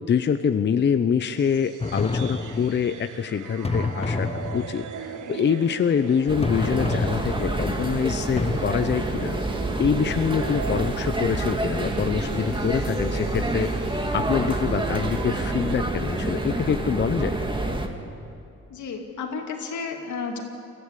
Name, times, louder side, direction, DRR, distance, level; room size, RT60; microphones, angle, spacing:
voice 1, 0.1-9.4 9.8-13.7 14.1-17.4, left 7 dB, 35° left, 9 dB, 0.7 m, -25 dB
sound 1, 1.4-15.8, right 7 dB, 80° right, 1.3 m, -40 dB
sound 2, 1.8-3.0 3.6-5.0 6.4-7.8 8.4-8.6, left 3 dB, 20° left, 1.1 m, -29 dB
sound 3, 6.3-17.9, right 2 dB, 15° right, 2.0 m, -27 dB
voice 2, 18.7-20.4, left 5 dB, 75° left, 3 dB, 2.7 m, -32 dB
22.5 x 14.0 x 8.2 m, 2.6 s
cardioid pair, 90°, 30 cm